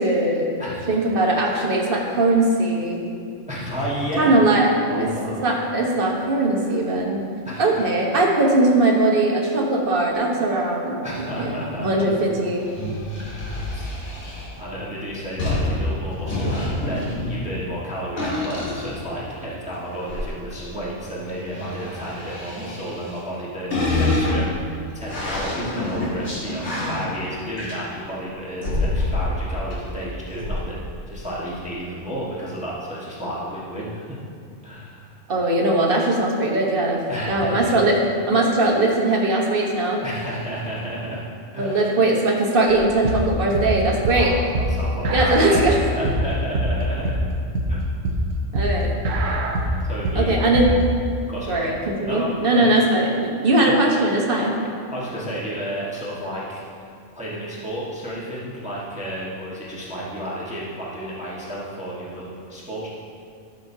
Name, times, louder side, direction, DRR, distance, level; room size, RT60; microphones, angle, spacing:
voice 1, 0.0-0.5 0.9-3.0 4.2-4.7 5.0-5.1 5.4-7.2 7.6-12.6 35.3-38.0 38.3-40.0 41.6-44.3 45.0-45.8 48.5-48.9 50.1-50.7 51.5-54.5, right 2 dB, 45° right, -1 dB, 1.3 m, -20 dB
voice 2, 0.6-1.0 3.5-4.3 4.8-5.4 6.6-6.8 7.4-7.7 11.0-12.2 13.4-13.9 14.6-34.0 34.6-35.2 37.1-37.7 40.0-41.2 41.5-41.9 44.1-47.1 47.7-47.9 49.8-50.3 51.3-51.6 52.0-52.8 53.6-53.7 54.4-54.5 54.9-56.6 57.1-62.9, equal, 5° right, -7 dB, 1.3 m, -32 dB
sound 1, 12.6-14.5 15.4-17.7 18.2-19.4 19.9-20.3 21.2-23.4 23.7-28.1 28.6-29.4 29.7-29.8 30.3-30.6, left 2 dB, 60° left, 2.0 m, -27 dB
sound 2, 42.7-50.8, right 1 dB, 75° right, 1.2 m, -24 dB
13.5 x 6.4 x 2.7 m, 2.3 s
omnidirectional pair, 1.3 m